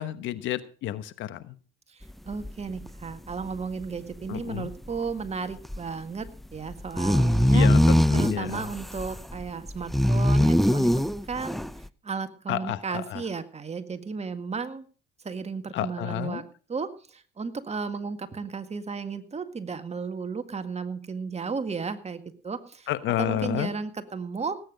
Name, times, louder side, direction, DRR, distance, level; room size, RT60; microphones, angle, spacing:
voice 1, 0.0-1.5 4.3-4.7 7.5-8.7 12.5-13.2 15.7-16.4 22.9-23.7, left 12 dB, 70° left, 14 dB, 1.1 m, -30 dB
voice 2, 1.9-7.7 8.1-11.6 12.0-14.9 15.2-16.4 16.7-22.9 23.2-24.6, right 5 dB, 30° right, 9 dB, 1.9 m, -34 dB
sound 1, 2.3-2.5 2.8-2.9 3.3-3.4 3.8-3.9 4.4-4.5 4.6-5.0 5.6-5.8 6.3-6.4 6.7-11.8, equal, ahead, 0.6 m, -22 dB
18.0 x 9.2 x 5.0 m, 0.39 s
supercardioid pair, 65°, 20 cm